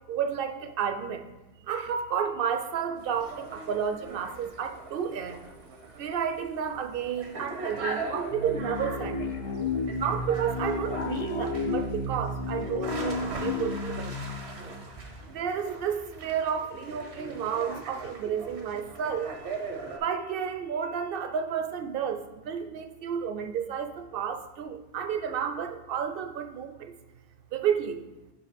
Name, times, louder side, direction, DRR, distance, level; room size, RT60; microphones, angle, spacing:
voice 1, 0.1-1.2 1.6-5.4 6.0-9.3 9.9-14.3 15.3-19.5 19.9-26.9 27.5-28.0, right 7 dB, 65° right, 8 dB, 0.7 m, -31 dB
sound 1, 3.0-20.0, right 3 dB, 90° right, 1.2 m, -40 dB
sound 2, 8.3-15.5, left 3 dB, 40° left, 0.6 m, -33 dB
5.3 x 5.0 x 5.0 m, 1.0 s
omnidirectional pair, 1.1 m